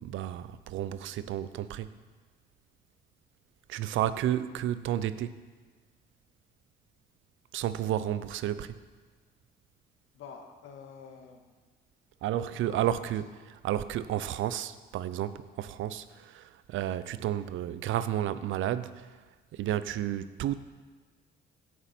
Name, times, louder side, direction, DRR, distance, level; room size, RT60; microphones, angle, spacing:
voice 1, 0.0-2.0 3.7-5.4 7.5-8.8 12.2-19.2 19.5-20.5, right 11 dB, 80° right, 0.6 m, -32 dB
voice 2, 10.1-11.4 12.5-13.2 19.7-20.0, left 6 dB, 80° left, 1.7 m, -49 dB
16.0 x 7.4 x 4.4 m
cardioid pair, 90°, 20 cm